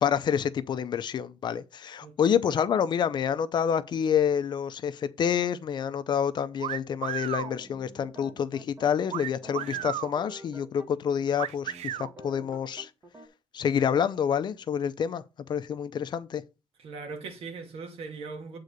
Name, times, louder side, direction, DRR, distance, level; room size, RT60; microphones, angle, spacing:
voice 1, 0.0-12.9 13.5-16.4, left 8 dB, 45° left, 0.6 m, -28 dB
sound 1, 6.6-7.5 9.1-10.1 11.4-12.1, right 11 dB, 85° right, 0.6 m, -33 dB
sound 2, 7.4-10.9 11.2-11.3 11.7-13.3, equal, 20° right, 1.1 m, -48 dB
voice 2, 16.8-18.6, right 4 dB, 65° right, 2.2 m, -39 dB
8.3 x 3.8 x 6.5 m
cardioid pair, 170°, 11 cm